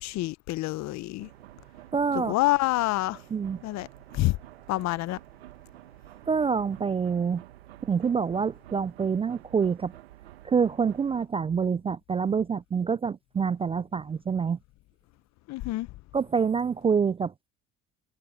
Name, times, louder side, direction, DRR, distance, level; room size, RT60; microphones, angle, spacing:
voice 1, 0.0-1.3 2.1-3.2 3.6-3.9 4.1-4.4 4.7-5.2 15.5-15.9, left 19 dB, 60° left, 0.8 m, -27 dB
sound 1, 1.2-11.3, right 15 dB, 90° right, 1.6 m, -50 dB
voice 2, 1.9-2.3 3.3-3.6 6.3-7.4 7.8-9.9 10.4-14.6 16.1-17.3, right 6 dB, 20° right, 0.3 m, -26 dB
hypercardioid pair, 65°, 30 cm